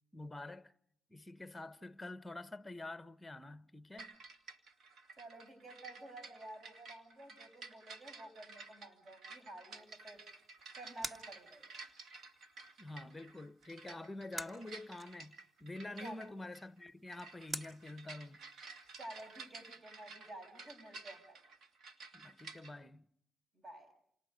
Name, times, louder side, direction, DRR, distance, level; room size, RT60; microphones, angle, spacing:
voice 1, 0.1-0.7 1.1-4.2 12.8-18.4 22.1-23.0, left 2 dB, 15° left, 0.9 m, -47 dB
sound 1, 4.0-22.7, right 4 dB, 70° right, 2.3 m, -53 dB
voice 2, 5.2-10.3 10.7-11.7 16.0-16.2 19.0-21.4 23.5-23.9, right 1 dB, 45° right, 6.1 m, -52 dB
sound 2, 9.7-19.8, right 1 dB, 20° right, 1.5 m, -52 dB
29.0 x 27.5 x 5.2 m
cardioid pair, 90°, 0 cm